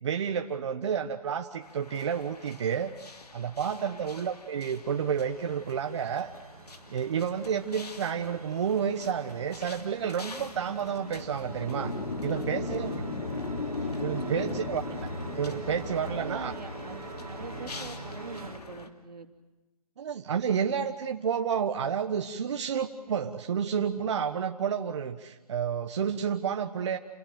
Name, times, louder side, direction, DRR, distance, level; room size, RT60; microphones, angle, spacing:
voice 1, 0.0-2.9 3.3-6.3 6.9-11.9 12.2-12.9 14.0-15.0 15.4-16.5 20.0-27.0, right 7 dB, 45° right, 6 dB, 1.2 m, -30 dB
sound 1, 1.6-18.9, left 3 dB, 80° left, 2.9 m, -39 dB
voice 2, 3.7-4.0 12.3-13.2 14.2-14.6 16.1-19.3, right 4 dB, 85° right, 7 dB, 2.8 m, -44 dB
sound 2, 4.0-18.6, right 5 dB, 65° right, 2.3 m, -46 dB
28.5 x 17.5 x 9.3 m, 1.2 s
hypercardioid pair, 155°, 20 cm